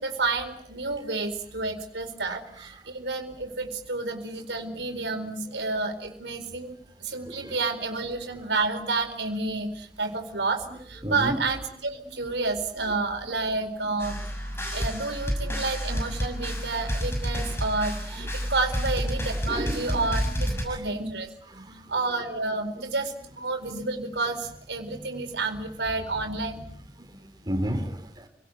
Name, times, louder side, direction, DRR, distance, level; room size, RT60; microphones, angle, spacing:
voice 1, 0.0-14.3 14.7-21.3 21.9-26.7, right 3 dB, 85° right, 4.4 m, -30 dB
voice 2, 2.2-2.8 7.3-7.6 11.0-11.4 13.2-13.3 14.6-14.7 18.2-18.5 19.5-20.8 21.5-21.9 22.8-22.9 27.0-28.3, equal, 25° right, 3.4 m, -34 dB
sound 1, 14.0-20.6, equal, 15° left, 6.3 m, -30 dB
29.0 x 18.5 x 9.3 m
head